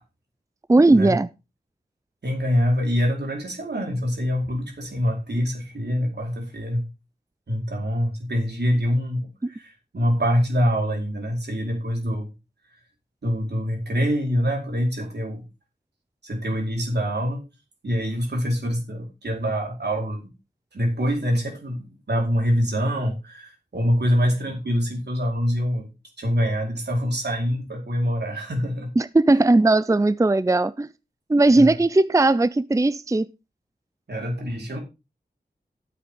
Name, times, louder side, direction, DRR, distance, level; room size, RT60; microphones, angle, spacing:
voice 1, 0.7-1.3 29.0-30.9 31.3-33.3, right 2 dB, 20° right, 0.5 m, -18 dB
voice 2, 2.2-6.8 7.5-12.3 13.2-15.4 16.2-17.4 17.8-20.3 20.7-25.9 26.2-28.9 31.5-31.8 34.1-34.8, equal, 80° right, 4.7 m, -25 dB
12.0 x 8.6 x 3.8 m
wide cardioid pair, 55°, 17 cm